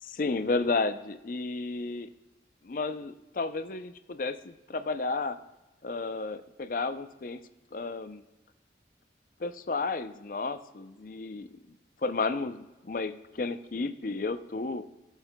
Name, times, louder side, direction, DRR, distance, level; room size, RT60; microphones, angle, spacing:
voice 1, 0.0-2.1 2.6-5.4 5.8-7.4 7.7-8.2 9.4-11.8 12.0-14.8, left 3 dB, 50° left, 11 dB, 0.5 m, -32 dB
16.5 x 7.3 x 2.2 m, 1.1 s
head